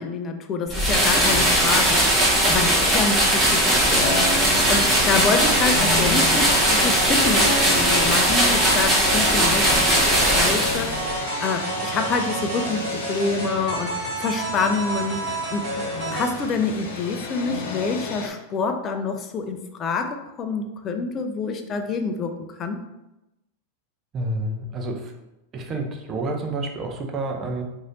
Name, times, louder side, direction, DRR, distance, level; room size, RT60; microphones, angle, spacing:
voice 1, 0.0-2.1 2.5-4.1 4.7-9.8 10.1-11.0 11.4-15.9 16.1-22.3 22.6-22.8, left 4 dB, 35° left, 6 dB, 0.5 m, -27 dB
sound 1, 0.7-11.1, right 1 dB, 15° right, 1.2 m, -19 dB
sound 2, 3.9-18.3, left 3 dB, 75° left, 0.7 m, -32 dB
sound 3, 5.4-16.4, right 2 dB, 50° right, 1.3 m, -30 dB
voice 2, 24.1-25.1 25.5-27.6, right 2 dB, 35° right, 3 dB, 0.7 m, -29 dB
3.2 x 2.7 x 3.9 m, 0.94 s
hypercardioid pair, 105°, 0 cm